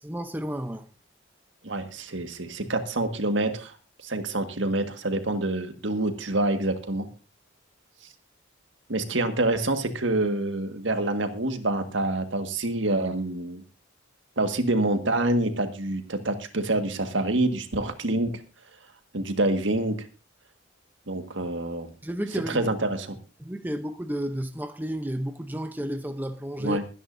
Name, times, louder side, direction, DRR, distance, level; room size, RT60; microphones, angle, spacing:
voice 1, 0.0-0.9 22.0-22.6 23.4-26.8, equal, 10° right, 0.7 m, -32 dB
voice 2, 1.6-3.7 4.0-7.1 8.9-13.6 14.4-18.4 19.1-20.1 21.1-21.9 22.5-23.2 26.6-26.8, right 2 dB, 70° right, 1.7 m, -27 dB
23.5 x 10.0 x 2.7 m
head